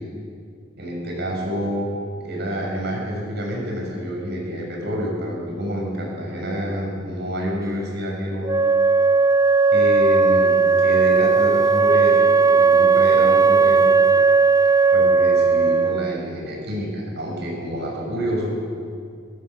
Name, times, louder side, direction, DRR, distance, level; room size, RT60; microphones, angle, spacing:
voice 1, 0.8-1.9 2.2-8.6 9.7-14.0 14.9-18.5, equal, 60° right, -1 dB, 7.0 m, -28 dB
Wind instrument woodwind instrument, 8.5-16.2, right 4 dB, 15° right, 0.4 m, -16 dB
23.5 x 15.5 x 7.2 m, 2.3 s
head